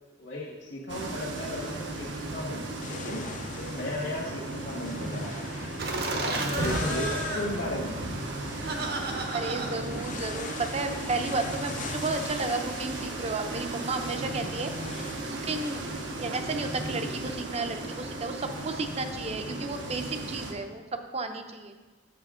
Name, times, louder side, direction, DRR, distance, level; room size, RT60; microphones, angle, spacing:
voice 1, 0.2-3.3 3.6-5.4 6.1-8.0, left 1 dB, 65° left, -5 dB, 1.5 m, -35 dB
sound 1, 0.9-20.5, right 2 dB, 85° right, 1.0 m, -36 dB
sound 2, 2.8-15.1, left 6 dB, 45° left, 0.5 m, -44 dB
Laughter, 5.8-11.0, right 2 dB, 60° right, 0.9 m, -33 dB
voice 2, 9.3-15.8 16.2-21.7, right 3 dB, 35° right, 7 dB, 0.6 m, -33 dB
7.5 x 6.6 x 3.7 m, 1.2 s
head